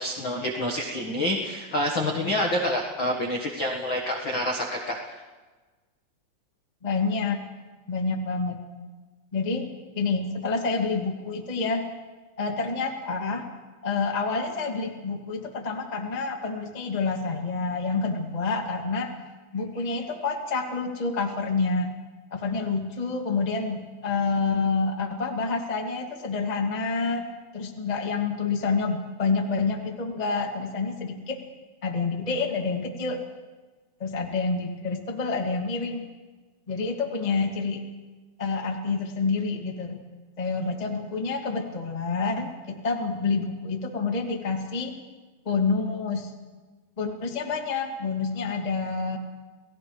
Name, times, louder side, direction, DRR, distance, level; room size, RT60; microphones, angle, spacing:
voice 1, 0.0-5.2, left 1 dB, 65° left, 0 dB, 1.1 m, -27 dB
voice 2, 6.8-7.4 7.9-8.6 9.3-9.7 9.9-11.8 12.4-13.5 13.8-19.1 19.5-21.9 22.3-27.3 27.5-31.4 31.8-33.2 34.0-36.0 36.7-37.8 38.4-40.0 40.4-44.9 45.4-46.3 47.0-49.2, left 4 dB, 25° left, 1 dB, 0.8 m, -28 dB
30.0 x 18.5 x 5.0 m, 1.3 s
omnidirectional pair, 5.1 m